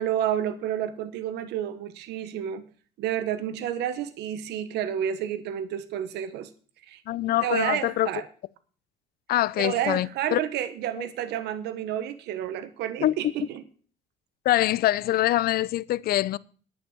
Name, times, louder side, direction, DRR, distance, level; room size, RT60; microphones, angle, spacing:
voice 1, 0.0-2.7 3.0-6.5 6.9-7.0 7.4-8.3 9.6-13.6, right 10 dB, 80° right, 1.2 m, -30 dB
voice 2, 7.1-8.1 9.3-10.4 11.0-11.1 13.0-13.1 14.4-16.4, left 14 dB, 65° left, 0.6 m, -24 dB
10.5 x 8.9 x 7.0 m
cardioid pair, 110°, 17 cm